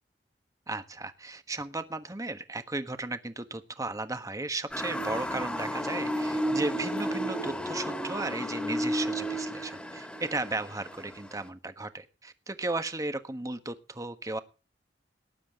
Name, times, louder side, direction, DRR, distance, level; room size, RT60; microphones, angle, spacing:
voice 1, 0.7-14.4, right 2 dB, 20° right, 9 dB, 1.3 m, -35 dB
Motor vehicle (road) / Siren, 4.7-11.5, equal, 5° left, 2.2 m, -33 dB
19.0 x 10.0 x 3.7 m, 0.33 s
head